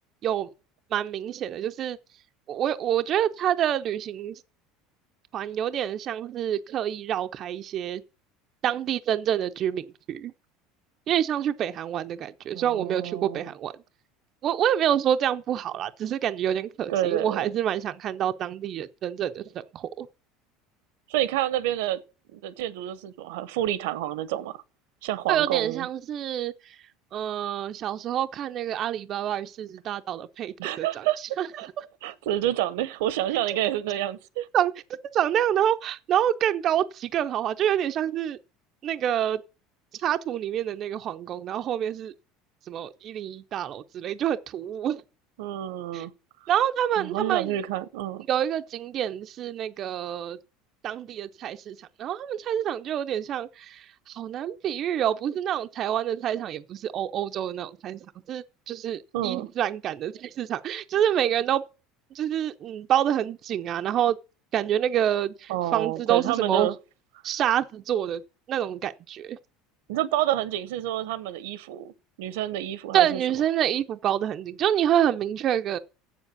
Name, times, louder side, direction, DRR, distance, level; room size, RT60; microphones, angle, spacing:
voice 1, 0.9-2.0 2.5-4.3 5.3-8.0 8.6-10.3 11.1-13.7 14.4-20.1 25.3-26.5 27.1-31.1 31.4-31.5 34.5-34.7 35.1-38.4 38.8-39.4 40.0-42.1 42.7-45.0 45.9-46.1 46.5-47.5 48.3-50.4 50.8-61.6 62.1-64.2 64.5-66.7 67.2-68.2 68.5-69.4 72.9-75.8, right 10 dB, 40° right, 0.5 m, -27 dB
voice 2, 12.5-13.5 16.9-17.5 21.1-22.0 22.3-24.6 25.0-25.9 30.6-31.7 32.0-34.5 45.4-46.1 47.0-48.3 59.1-59.5 65.5-66.8 69.9-71.9 72.2-73.2, right 13 dB, 85° right, 0.8 m, -28 dB
7.5 x 7.2 x 8.1 m
cardioid pair, 145°, 0 cm